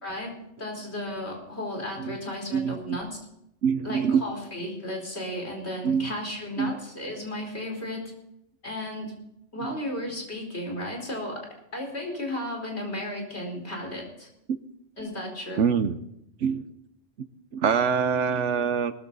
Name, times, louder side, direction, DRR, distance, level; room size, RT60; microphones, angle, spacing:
voice 1, 0.0-3.2 3.8-8.1 8.6-9.1 9.5-11.5 11.7-14.3 15.0-15.6, left 1 dB, 60° left, 1 dB, 4.9 m, -34 dB
voice 2, 2.5-3.0 3.6-4.2 5.8-6.1 6.6-6.7 9.6-9.7 15.6-16.0 16.4-16.7 17.5-18.9, right 6 dB, 70° right, 12 dB, 1.2 m, -25 dB
19.5 x 14.0 x 4.0 m, 0.81 s
omnidirectional pair, 1.3 m